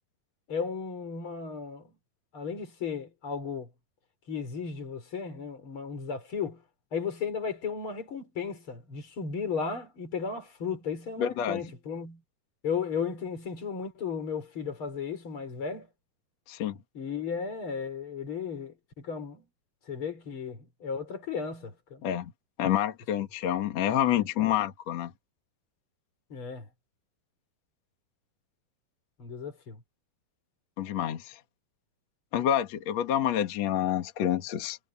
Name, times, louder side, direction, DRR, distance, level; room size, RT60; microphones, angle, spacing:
voice 1, 0.5-1.9 2.3-3.7 4.3-6.6 6.9-12.2 12.6-15.9 16.9-19.4 19.9-22.0 24.1-24.5 26.3-26.7 29.2-29.8, left 6 dB, 35° left, 5.0 m, -35 dB
voice 2, 11.2-11.6 16.5-16.8 22.0-22.3 22.6-25.1 30.8-31.4 32.3-34.8, left 10 dB, 50° left, 2.5 m, -28 dB
omnidirectional pair, 4.4 m